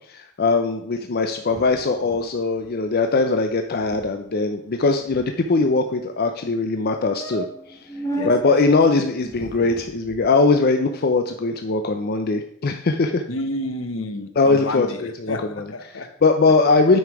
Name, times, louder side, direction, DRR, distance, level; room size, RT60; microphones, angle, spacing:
voice 1, 0.1-7.9 8.2-13.2 14.4-17.0, left 3 dB, 50° left, 6 dB, 0.5 m, -21 dB
sound 1, 1.5-2.3 2.6-2.7 3.0-3.2 3.5-3.6 3.8-4.1 4.7-5.7 6.4-6.5 6.8-6.9 7.2-8.4 9.2-10.2, right 1 dB, 15° left, 1.8 m, -35 dB
voice 2, 8.1-8.5 13.3-16.1, left 1 dB, 85° left, 9 dB, 1.0 m, -30 dB
9.2 x 5.5 x 4.7 m, 0.69 s
head